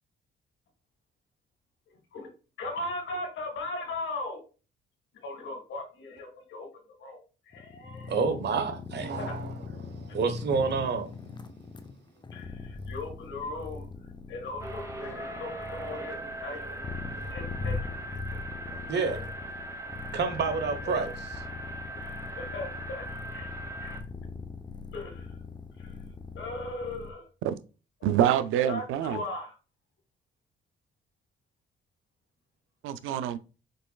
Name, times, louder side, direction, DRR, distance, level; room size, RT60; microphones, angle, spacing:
voice 1, 1.9-2.3 2.6-4.4 5.2-6.7 7.0-8.1 9.2-9.3 12.3-13.9 14.3-16.8 17.3-17.8 19.1-19.3 21.9-23.0 23.3-23.5 23.8-24.0 24.9-25.4 25.8-26.0 26.3-27.3 28.2-28.3 28.6-29.5, left 2 dB, 70° left, 2.0 m, -38 dB
sound 1, 7.5-27.1, left 4 dB, 20° left, 0.7 m, -41 dB
voice 2, 8.1-11.2 15.0-15.4 15.9-16.7 17.1-17.4 18.7-19.2 20.1-21.1, right 4 dB, 60° right, 1.1 m, -30 dB
sound 2, 14.6-24.0, right 2 dB, 15° right, 1.1 m, -40 dB
voice 3, 28.0-29.2 32.8-33.4, right 11 dB, 90° right, 0.5 m, -26 dB
5.3 x 3.9 x 2.3 m
cardioid pair, 90°, 20 cm